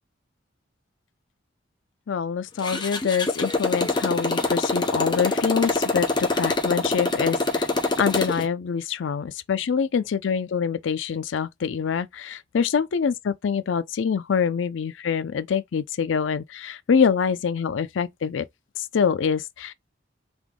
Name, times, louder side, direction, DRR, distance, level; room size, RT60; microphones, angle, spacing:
voice 1, 2.1-7.7 8.0-18.4 18.8-19.7, left 6 dB, 80° left, 0.4 m, -25 dB
Motorcycle, 2.6-8.5, left 3 dB, 25° left, 0.7 m, -24 dB
3.5 x 2.9 x 3.6 m
head